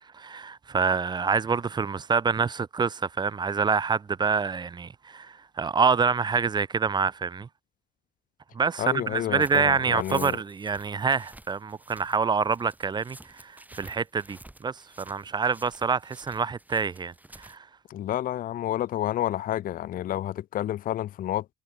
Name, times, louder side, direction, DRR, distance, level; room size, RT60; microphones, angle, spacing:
voice 1, 0.1-7.5 8.5-17.7, right 5 dB, 30° right, 0.5 m, -26 dB
voice 2, 8.8-10.4 17.9-21.5, left 12 dB, 65° left, 0.7 m, -30 dB
sound 1, 9.4-17.6, right 1 dB, 10° right, 4.7 m, -50 dB
cardioid pair, 75°, 16 cm